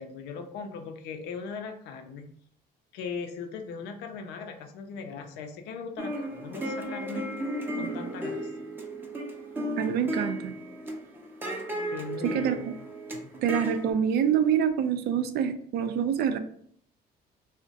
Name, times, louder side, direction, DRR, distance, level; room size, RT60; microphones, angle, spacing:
voice 1, 0.0-2.3 2.9-7.3 7.7-8.5 11.9-12.7 13.1-13.3, left 5 dB, 85° left, 5 dB, 0.5 m, -39 dB
sound 1, 6.0-13.9, right 1 dB, 10° right, 0.5 m, -35 dB
voice 2, 9.8-10.5 12.2-12.7 13.4-16.4, right 8 dB, 70° right, 9 dB, 0.4 m, -26 dB
2.5 x 2.1 x 3.8 m, 0.63 s
cardioid pair, 110°, 17 cm